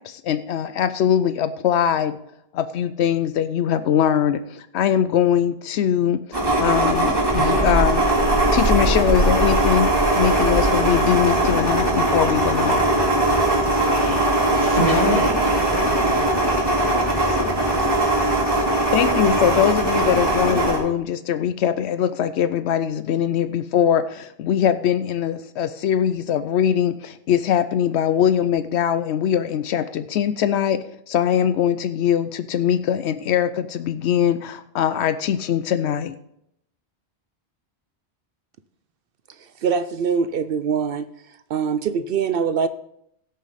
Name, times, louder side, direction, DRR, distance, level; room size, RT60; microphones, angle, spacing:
voice 1, 0.0-2.2 2.5-8.1 8.5-13.0 18.9-36.2, left 9 dB, 80° left, 12 dB, 0.8 m, -22 dB
sound 1, 6.3-20.8, right 1 dB, 20° right, 2.9 m, -20 dB
voice 2, 13.8-16.4, left 1 dB, 40° left, 0 dB, 2.5 m, -26 dB
voice 3, 39.6-41.1 41.5-42.7, right 6 dB, 65° right, 12 dB, 0.7 m, -23 dB
17.0 x 6.4 x 4.0 m, 0.76 s
omnidirectional pair, 1.1 m